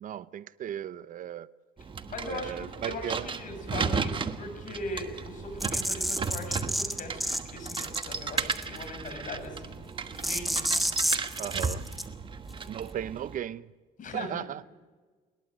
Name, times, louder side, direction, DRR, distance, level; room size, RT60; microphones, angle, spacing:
voice 1, 0.0-1.5 2.3-3.3 11.4-11.9 12.7-13.7 14.1-14.6, right 11 dB, 50° right, 0.6 m, -36 dB
sound 1, 1.8-13.4, right 5 dB, 30° right, 1.4 m, -35 dB
voice 2, 2.1-9.8 10.1-10.6 14.0-14.5, left 2 dB, 50° left, 7.2 m, -40 dB
sound 2, 5.6-7.4 7.7-8.0 8.4-8.8 10.2-12.0, equal, ahead, 1.9 m, -29 dB
21.5 x 20.5 x 7.8 m
cardioid pair, 110°, 17 cm